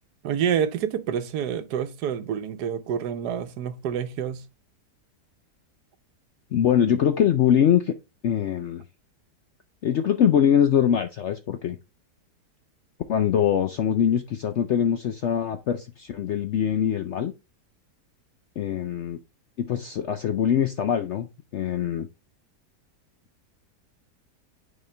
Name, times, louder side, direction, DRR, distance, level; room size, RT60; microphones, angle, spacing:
voice 1, 0.2-4.4, right 8 dB, 75° right, 1.3 m, -28 dB
voice 2, 6.5-7.9 8.2-8.8 9.8-11.8 13.1-17.3 18.6-19.2 19.7-22.1, left 9 dB, 65° left, 0.7 m, -23 dB
9.6 x 4.4 x 3.3 m
omnidirectional pair, 1.8 m